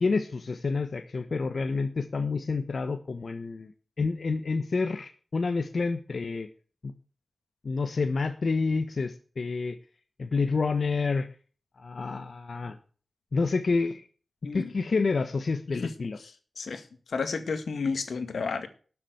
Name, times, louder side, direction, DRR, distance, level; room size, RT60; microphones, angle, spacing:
voice 1, 0.0-3.7 4.0-6.5 6.8-6.9 7.6-9.7 10.2-11.3 11.8-12.8 13.3-14.0 14.5-16.2, left 4 dB, 60° left, 8 dB, 1.2 m, -28 dB
voice 2, 16.2-16.8 17.1-18.7, left 5 dB, 85° left, 9 dB, 2.0 m, -32 dB
12.5 x 7.4 x 7.9 m, 0.39 s
wide cardioid pair, 80°, 0 cm